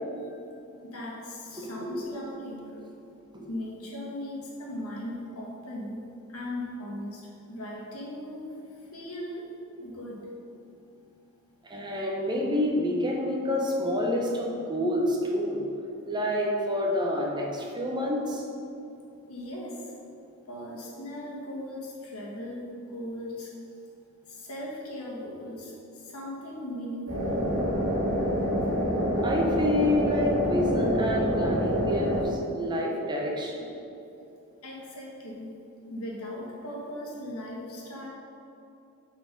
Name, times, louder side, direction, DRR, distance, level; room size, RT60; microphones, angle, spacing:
voice 1, 0.8-2.8 3.5-6.0 6.3-8.5 8.9-9.5 9.8-10.2 19.3-19.9 20.5-23.5 24.3-27.6 34.6-35.6 35.9-38.1, left 1 dB, 75° left, -3 dB, 1.7 m, -38 dB
voice 2, 1.6-1.9 3.3-3.5 11.6-15.6 16.1-18.4 29.1-33.7, left 1 dB, 20° right, -1 dB, 1.0 m, -28 dB
sound 1, 27.1-32.2, equal, 80° right, 1.8 m, -26 dB
7.7 x 4.6 x 5.4 m, 2.7 s
head